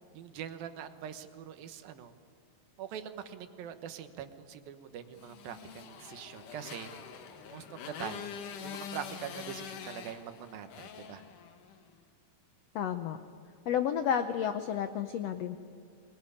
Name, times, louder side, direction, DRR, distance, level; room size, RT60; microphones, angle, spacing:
voice 1, 0.1-2.1 2.8-6.9 7.5-8.2 8.6-11.2, right 9 dB, 85° right, 9 dB, 3.0 m, -43 dB
Motorcycle, 5.2-11.9, left 7 dB, 65° left, 2.9 m, -45 dB
voice 2, 12.7-13.2 13.7-15.6, left 9 dB, 85° left, 9 dB, 1.4 m, -31 dB
24.0 x 21.0 x 9.9 m, 2.3 s
omnidirectional pair, 4.1 m